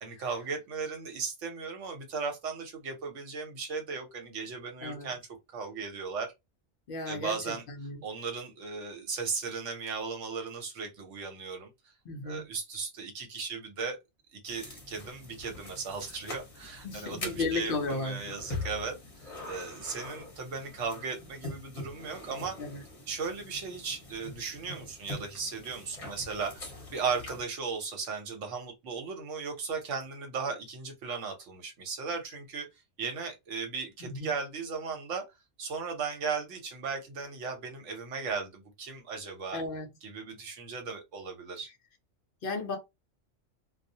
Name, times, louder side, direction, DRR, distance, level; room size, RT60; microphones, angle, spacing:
voice 1, 0.0-5.2 5.5-6.3 7.1-7.6 8.0-11.7 12.2-14.0 14.3-22.6 23.1-32.7 33.0-35.2 35.6-39.6 40.0-41.7, right 5 dB, 70° right, 1.1 m, -36 dB
voice 2, 4.8-5.1 6.9-8.0 12.0-12.5 16.8-18.4 22.6-22.8 34.0-34.3 39.5-39.9 41.6-41.8 42.4-42.8, left 3 dB, 60° left, 0.6 m, -35 dB
sound 1, 14.4-27.4, left 2 dB, 35° left, 0.8 m, -44 dB
2.3 x 2.0 x 2.6 m
omnidirectional pair, 1.3 m